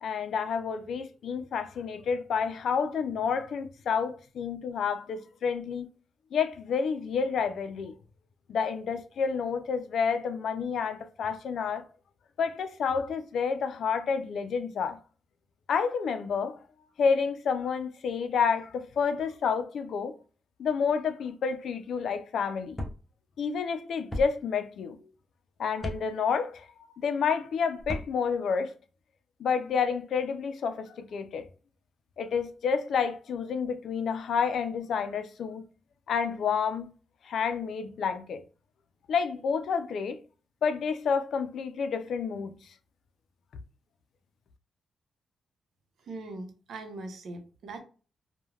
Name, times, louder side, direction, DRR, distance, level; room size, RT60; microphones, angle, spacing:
voice 1, 0.0-5.9 6.3-8.0 8.5-11.8 12.4-15.0 15.7-16.6 17.0-20.1 20.6-22.8 23.4-25.0 25.6-26.7 27.0-28.7 29.4-31.4 32.2-35.6 36.1-36.9 37.2-38.4 39.1-40.2 40.6-42.5, left 6 dB, 70° left, 0.4 m, -29 dB
sound 1, 22.7-23.0 24.1-24.3 25.8-26.0 27.8-28.1, left 1 dB, 15° left, 0.6 m, -34 dB
voice 2, 46.0-47.8, right 2 dB, 70° right, 0.7 m, -41 dB
3.2 x 2.2 x 2.3 m
wide cardioid pair, 130°, 0 cm